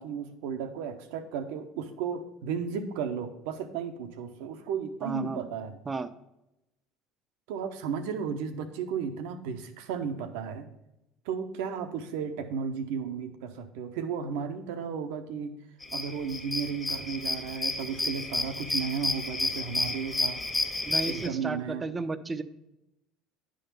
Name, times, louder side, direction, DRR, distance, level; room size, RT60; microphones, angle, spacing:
voice 1, 0.0-5.7 7.5-10.7 11.2-15.5 15.9-20.4 21.1-21.9, right 6 dB, 75° right, 8 dB, 0.9 m, -34 dB
voice 2, 5.0-5.4 5.9-6.1 20.8-22.4, right 3 dB, 25° right, 11 dB, 0.7 m, -33 dB
sound 1, 15.8-21.3, left 2 dB, 20° left, 1.4 m, -31 dB
10.0 x 3.9 x 6.8 m, 0.90 s
hypercardioid pair, 80°, 0 cm